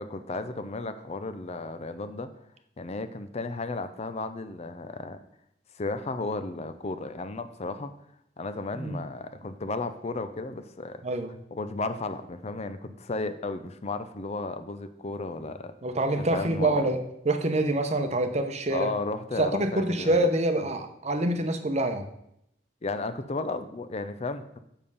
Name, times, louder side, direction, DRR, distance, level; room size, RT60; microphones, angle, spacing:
voice 1, 0.0-2.3 2.8-5.2 5.7-7.9 8.4-11.0 11.5-15.7 16.2-16.8 18.7-20.3 22.8-24.6, left 3 dB, 35° left, 10 dB, 0.6 m, -34 dB
voice 2, 11.0-11.3 15.8-17.0 17.2-18.9 19.4-22.0, right 1 dB, 40° right, 7 dB, 0.9 m, -26 dB
7.3 x 6.8 x 5.5 m, 0.77 s
head